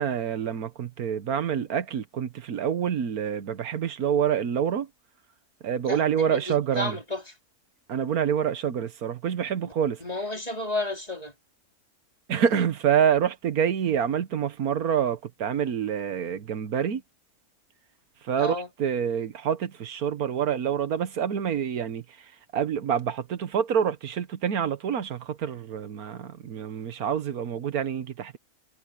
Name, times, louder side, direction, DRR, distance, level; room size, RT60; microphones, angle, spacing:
voice 1, 0.0-4.9 5.6-7.0 7.9-10.0 12.3-17.0 18.2-28.4, right 8 dB, 90° right, 1.6 m, -27 dB
voice 2, 5.8-7.2 10.0-11.3 18.4-18.7, left 2 dB, 25° left, 4.2 m, -32 dB
omnidirectional pair, 1.5 m